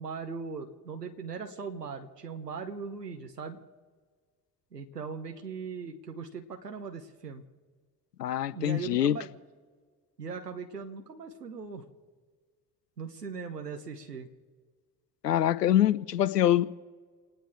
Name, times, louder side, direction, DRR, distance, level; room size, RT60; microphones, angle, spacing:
voice 1, 0.0-3.6 4.7-7.4 8.5-9.3 10.2-11.9 13.0-14.3, right 5 dB, 90° right, 4 dB, 1.0 m, -39 dB
voice 2, 8.2-9.2 15.2-16.7, left 12 dB, 85° left, 16 dB, 0.6 m, -24 dB
29.0 x 10.0 x 4.5 m, 1.5 s
figure-of-eight pair, 50°, 47 cm